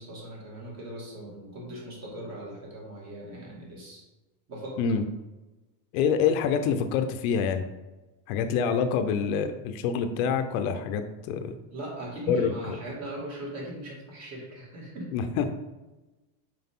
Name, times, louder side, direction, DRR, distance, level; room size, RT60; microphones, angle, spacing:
voice 1, 0.0-4.1 4.5-4.9 11.7-15.2, right 1 dB, 35° right, -2 dB, 2.1 m, -39 dB
voice 2, 5.9-7.6 8.3-11.5 12.3-12.5 15.1-15.5, left 6 dB, 60° left, 8 dB, 0.7 m, -26 dB
5.9 x 4.9 x 3.7 m, 1.1 s
supercardioid pair, 145°, 48 cm